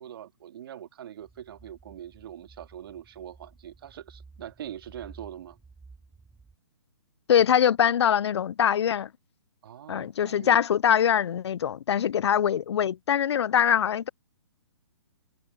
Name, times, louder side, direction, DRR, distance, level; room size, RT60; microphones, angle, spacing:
voice 1, 0.0-5.6 9.6-10.6, right 10 dB, 55° right, 2.1 m, -43 dB
sound 1, 1.2-6.6, right 4 dB, 5° right, 2.9 m, -53 dB
voice 2, 7.3-9.1 9.9-14.1, left 9 dB, 70° left, 0.4 m, -23 dB
hypercardioid pair, 140°, 15 cm